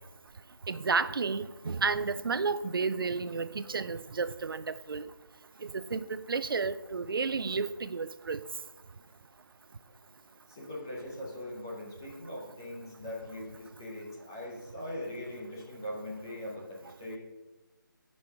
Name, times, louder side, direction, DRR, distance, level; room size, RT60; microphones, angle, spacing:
voice 1, 0.7-5.0 5.6-8.4, right 4 dB, 90° right, 0.4 m, -32 dB
voice 2, 10.5-17.2, left 1 dB, 10° left, 0.5 m, -41 dB
6.8 x 5.4 x 4.5 m
figure-of-eight pair, 175°, 11 cm